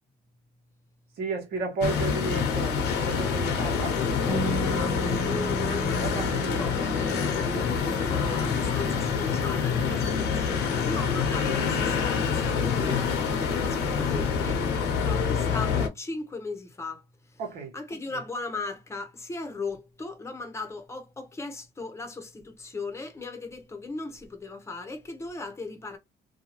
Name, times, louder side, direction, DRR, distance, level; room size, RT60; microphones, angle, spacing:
voice 1, 1.2-4.0 5.8-6.6 12.7-13.0 17.4-17.7, right 4 dB, 70° right, 1.2 m, -33 dB
sound 1, 1.8-15.9, left 6 dB, 90° left, 0.9 m, -26 dB
Bass guitar, 4.3-10.5, right 4 dB, ahead, 0.5 m, -37 dB
voice 2, 4.4-7.7 8.0-17.0 17.3-17.4 17.7-26.0, left 3 dB, 15° left, 0.8 m, -38 dB
2.7 x 2.3 x 2.9 m
cardioid pair, 110°, 17 cm